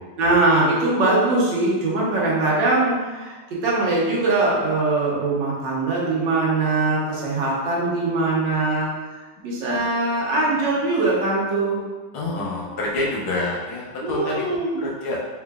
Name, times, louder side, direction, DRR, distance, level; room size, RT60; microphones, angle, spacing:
voice 1, 0.2-11.8 12.3-12.8 14.0-14.8, right 2 dB, 65° right, -5 dB, 1.6 m, -22 dB
voice 2, 12.1-14.4 14.8-15.2, left 2 dB, 80° left, -4 dB, 1.7 m, -27 dB
4.2 x 3.7 x 2.4 m, 1.4 s
omnidirectional pair, 2.2 m